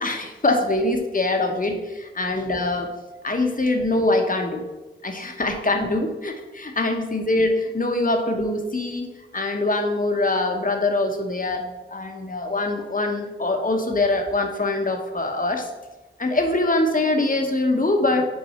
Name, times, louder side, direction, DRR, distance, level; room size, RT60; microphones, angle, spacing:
voice 1, 0.0-2.9 3.2-4.6 5.0-9.1 9.3-11.7 11.9-15.7 16.2-18.2, left 2 dB, 40° left, 4 dB, 1.0 m, -23 dB
5.6 x 4.6 x 4.3 m, 1.1 s
cardioid pair, 45°, 21 cm